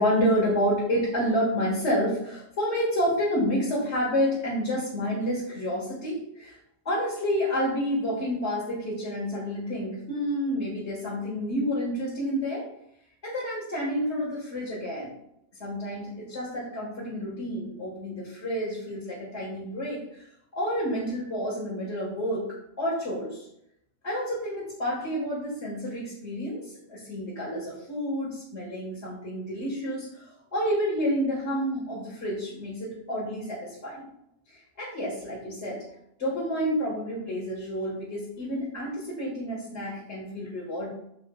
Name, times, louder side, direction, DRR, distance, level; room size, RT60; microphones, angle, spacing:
voice 1, 0.0-6.6 6.9-12.7 13.2-15.1 15.6-20.3 20.5-22.5 22.8-23.5 24.0-34.0 34.5-35.8 36.2-40.9, equal, 40° left, -6 dB, 1.9 m, -29 dB
8.2 x 6.5 x 2.4 m, 0.75 s
omnidirectional pair, 1.9 m